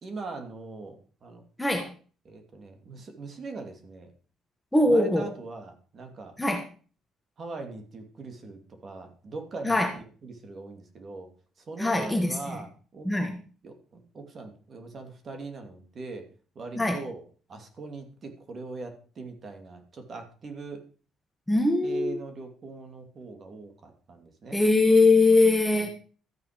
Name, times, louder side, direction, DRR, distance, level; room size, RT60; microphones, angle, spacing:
voice 1, 0.0-1.4 2.2-4.1 4.9-6.3 7.4-11.3 11.6-13.1 13.6-16.3 16.5-17.2 17.5-20.8 21.8-24.6 25.8-25.9, right 3 dB, 35° right, 5 dB, 2.8 m, -41 dB
voice 2, 1.6-1.9 4.7-5.3 6.4-6.6 9.6-9.9 11.8-12.6 13.0-13.4 16.8-17.0 21.5-22.2 24.5-25.9, left 2 dB, 5° left, 3 dB, 1.4 m, -22 dB
13.5 x 9.5 x 5.2 m, 0.39 s
cardioid pair, 160°, 0 cm